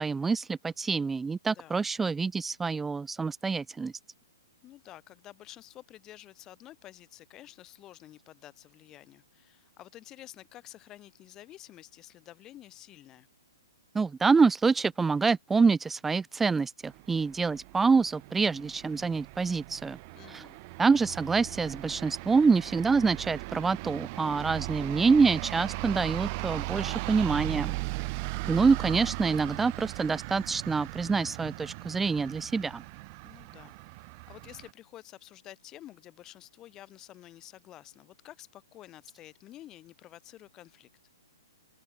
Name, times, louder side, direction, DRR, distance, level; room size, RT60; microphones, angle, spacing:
voice 1, 0.0-3.9 13.9-20.0 20.3-20.4 20.8-27.8 28.5-32.8, right 4 dB, 10° right, 0.4 m, -26 dB
voice 2, 4.6-13.3 20.1-20.6 24.4-24.7 33.2-40.9, left 14 dB, 25° left, 3.7 m, -50 dB
sound 1, 16.8-34.7, right 27 dB, 35° right, 0.8 m, -38 dB
open air
figure-of-eight pair, 120°, 2 cm